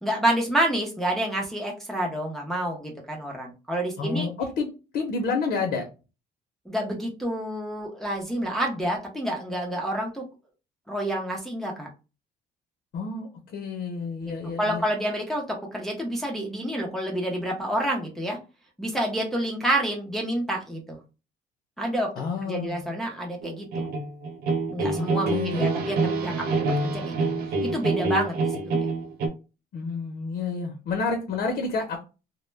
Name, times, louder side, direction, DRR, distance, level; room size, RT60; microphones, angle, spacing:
voice 1, 0.0-4.3 6.7-10.3 10.9-11.9 14.6-18.4 18.8-21.0 21.8-22.1 22.5-23.8 24.7-27.2 27.6-28.9, right 1 dB, ahead, -2 dB, 0.5 m, -28 dB
voice 2, 4.0-4.7 4.9-5.9 12.9-14.8 22.2-22.8 24.8-25.9 29.7-32.0, left 4 dB, 70° left, 3 dB, 0.6 m, -29 dB
sound 1, 23.4-29.3, right 3 dB, 65° right, 0.5 m, -26 dB
2.1 x 2.1 x 3.1 m, 0.31 s
cardioid pair, 110°, 17 cm